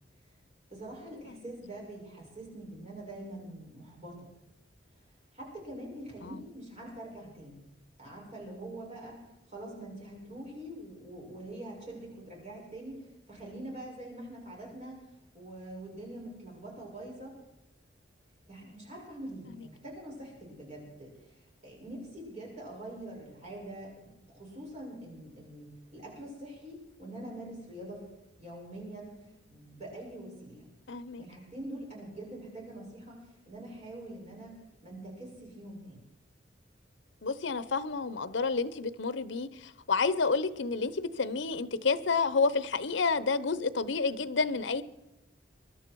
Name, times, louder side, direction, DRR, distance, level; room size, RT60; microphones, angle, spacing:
voice 1, 0.7-4.3 5.3-7.7 8.0-15.0 15.3-17.3 18.5-28.0 28.4-29.1 29.5-30.7 31.2-36.1, right 1 dB, 40° right, 6.9 m, -44 dB
voice 2, 30.9-31.2 37.2-39.5 39.9-44.8, left 4 dB, 75° left, 0.8 m, -29 dB
23.0 x 12.0 x 4.7 m
head